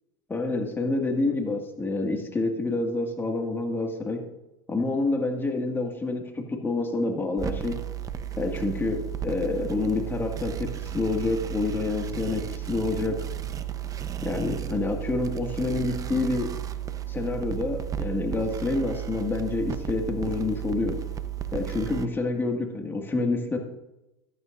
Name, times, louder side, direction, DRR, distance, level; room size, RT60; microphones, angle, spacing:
voice 1, 0.3-4.3 4.7-7.8 8.4-13.2 14.2-16.6 17.1-21.0 21.5-23.6, left 3 dB, 15° left, 3 dB, 1.9 m, -28 dB
sound 1, 7.4-22.1, right 10 dB, 25° right, 0.8 m, -34 dB
14.0 x 13.5 x 2.6 m, 0.94 s
supercardioid pair, 105°, 13 cm